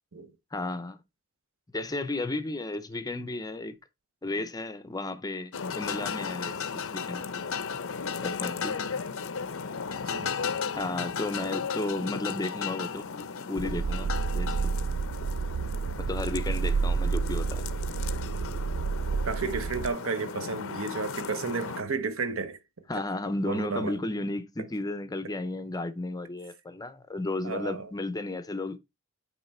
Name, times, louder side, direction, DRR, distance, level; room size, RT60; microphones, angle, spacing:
voice 1, 0.5-1.0 1.7-3.8 4.2-7.2 8.2-8.8 10.8-13.1 13.5-14.7 16.1-17.6 22.9-28.8, left 2 dB, 15° left, 0.5 m, -33 dB
sound 1, 5.5-21.8, left 6 dB, 65° left, 0.6 m, -35 dB
sound 2, 13.6-19.9, right 5 dB, 80° right, 0.4 m, -30 dB
voice 2, 19.2-22.6 23.5-24.0 27.4-27.9, right 4 dB, 65° right, 0.9 m, -32 dB
9.1 x 3.1 x 4.2 m
head